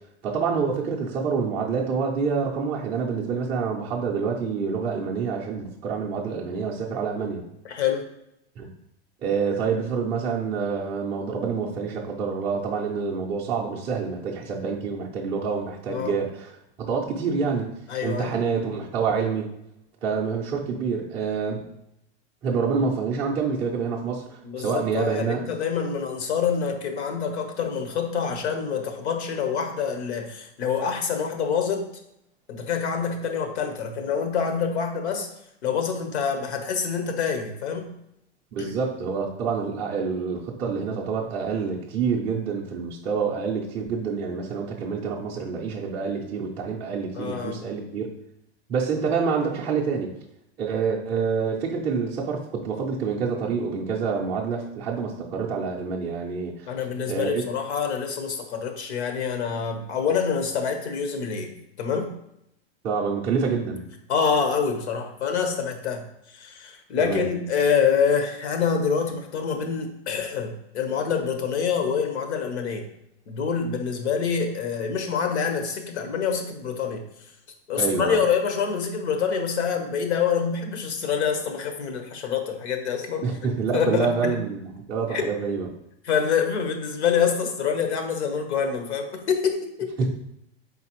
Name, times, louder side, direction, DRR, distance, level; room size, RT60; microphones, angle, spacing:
voice 1, 0.2-7.4 8.6-8.7 9.2-17.7 18.0-19.5 20.0-21.7 22.4-25.4 38.5-48.1 48.7-50.1 50.6-56.7 57.1-57.4 62.8-63.9 67.0-67.3 77.8-78.2 83.2-85.7 90.0-90.1, right 5 dB, 15° right, -5 dB, 0.4 m, -27 dB
voice 2, 7.6-8.0 15.9-16.1 17.9-18.3 24.4-31.9 32.5-35.3 35.6-37.9 38.6-38.7 47.1-47.6 56.7-62.1 64.1-72.9 73.3-77.0 77.7-83.3 83.7-84.4 85.1-85.3 86.0-89.9, left 6 dB, 90° left, 5 dB, 1.0 m, -26 dB
4.0 x 3.8 x 2.9 m, 0.79 s
supercardioid pair, 155°, 32 cm